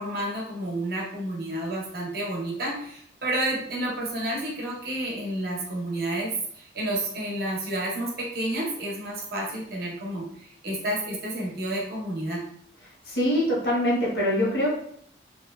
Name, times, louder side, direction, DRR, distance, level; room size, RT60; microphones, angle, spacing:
voice 1, 0.0-12.4, right 1 dB, 60° right, -3 dB, 0.8 m, -30 dB
voice 2, 13.1-14.7, equal, 75° left, -4 dB, 0.9 m, -23 dB
2.8 x 2.1 x 2.2 m, 0.67 s
head